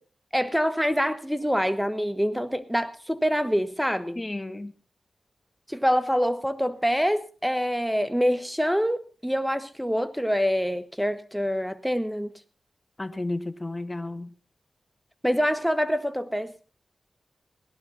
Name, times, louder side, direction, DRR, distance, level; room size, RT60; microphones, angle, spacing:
voice 1, 0.3-4.2 5.7-12.3 15.2-16.5, equal, ahead, 12 dB, 1.3 m, -25 dB
voice 2, 4.2-4.7 13.0-14.3, left 2 dB, 30° left, 11 dB, 0.9 m, -32 dB
17.5 x 11.5 x 4.1 m, 0.36 s
cardioid pair, 50°, 0 cm